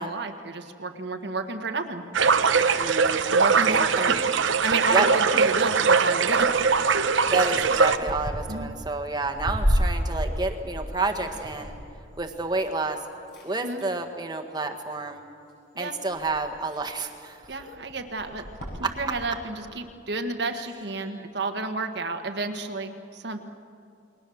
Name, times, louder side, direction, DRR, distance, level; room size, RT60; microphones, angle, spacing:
voice 1, 0.0-2.7 3.3-4.2 4.6-6.9 8.5-8.7 13.6-13.8 15.7-15.9 17.5-18.4 18.8-23.4, right 3 dB, 60° right, 5 dB, 1.4 m, -31 dB
sound 1, 2.1-8.0, right 5 dB, 80° right, 0.9 m, -21 dB
voice 2, 2.8-3.2 3.7-4.2 4.9-5.1 7.3-11.7 12.2-13.0 13.4-15.2 15.8-17.4 18.8-18.9 21.0-21.1, right 3 dB, 20° right, 4 dB, 1.6 m, -29 dB
sound 2, 6.1-13.0 13.3-14.0 14.9-15.2 15.8-15.9 16.1-19.3, equal, 55° left, 6.6 m, -32 dB
29.5 x 22.0 x 7.1 m, 2.5 s
head